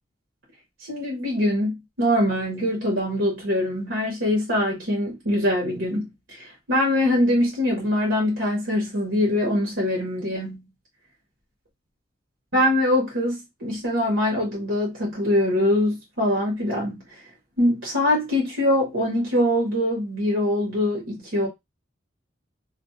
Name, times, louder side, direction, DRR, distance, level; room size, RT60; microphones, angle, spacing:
voice 1, 0.9-10.7 12.5-17.0 17.6-21.5, left 1 dB, 85° right, 1.0 m, -23 dB
2.5 x 2.0 x 2.6 m
head